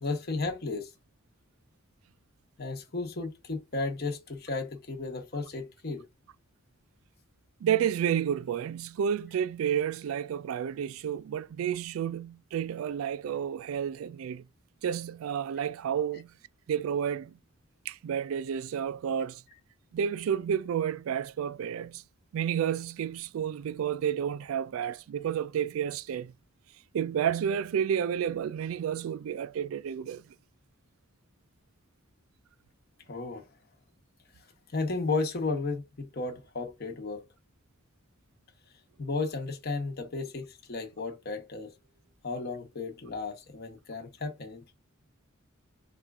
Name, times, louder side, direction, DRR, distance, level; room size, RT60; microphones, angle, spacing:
voice 1, 0.0-0.9 2.6-6.0 33.1-33.4 34.7-37.2 39.0-41.7 42.2-44.6, left 3 dB, 50° left, 1.0 m, -34 dB
voice 2, 7.6-14.4 14.8-16.3 16.7-17.4 17.9-19.4 19.9-22.0 22.3-26.3 26.9-30.2, right 8 dB, 80° right, 0.3 m, -30 dB
4.2 x 2.4 x 3.5 m
head